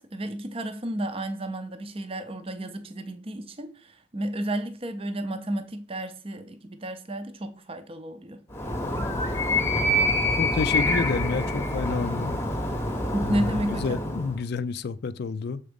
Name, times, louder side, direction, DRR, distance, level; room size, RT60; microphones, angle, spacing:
voice 1, 0.0-8.4 13.1-14.0, right 1 dB, 30° right, 0.6 m, -32 dB
Animal, 8.5-14.4, left 1 dB, 15° left, 0.9 m, -26 dB
voice 2, 10.4-12.4 13.2-15.6, left 5 dB, 50° left, 0.4 m, -30 dB
6.9 x 3.7 x 5.2 m
head